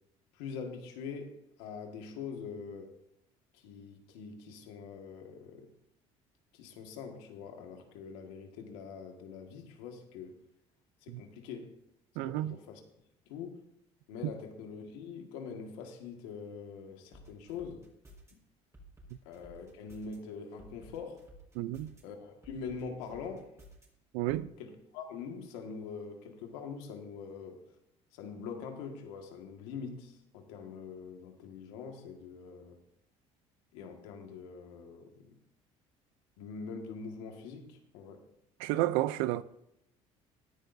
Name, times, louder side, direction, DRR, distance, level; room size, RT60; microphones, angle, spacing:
voice 1, 0.3-2.9 3.5-5.7 6.5-10.4 11.0-11.7 12.2-12.8 13.3-13.6 14.1-17.8 19.3-21.2 22.0-23.5 24.6-27.6 28.1-32.8 33.7-35.4 36.4-38.2, left 5 dB, 90° left, 1.8 m, -44 dB
voice 2, 12.2-12.6 21.6-21.9 24.1-24.5 38.6-39.4, right 15 dB, 85° right, 0.5 m, -31 dB
sound 1, 17.1-18.3 18.7-20.2 20.6-22.0 22.4-23.9 24.3-24.4, right 1 dB, 20° right, 4.5 m, -54 dB
16.5 x 10.5 x 2.7 m
supercardioid pair, 85°, 14 cm